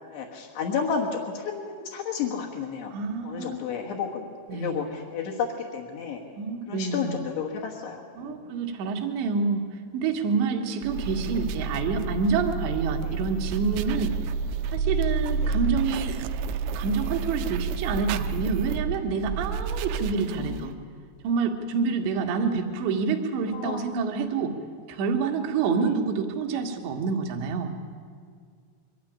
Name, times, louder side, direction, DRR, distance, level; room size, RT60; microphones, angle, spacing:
voice 1, 0.1-2.9 3.2-6.2 6.7-8.5 13.0-13.2 15.4-15.5 20.3-20.7 23.5-23.9, left 6 dB, 65° left, -3 dB, 3.3 m, -32 dB
voice 2, 2.9-3.6 4.5-4.8 6.4-7.2 8.2-9.6 9.9-14.2 14.7-16.2 16.8-20.7 21.2-24.6 24.9-27.7, right 5 dB, 65° right, 3 dB, 3.4 m, -27 dB
sound 1, 10.8-20.7, right 4 dB, 90° right, 3.4 m, -30 dB
23.0 x 13.0 x 10.0 m, 2.1 s
omnidirectional pair, 5.8 m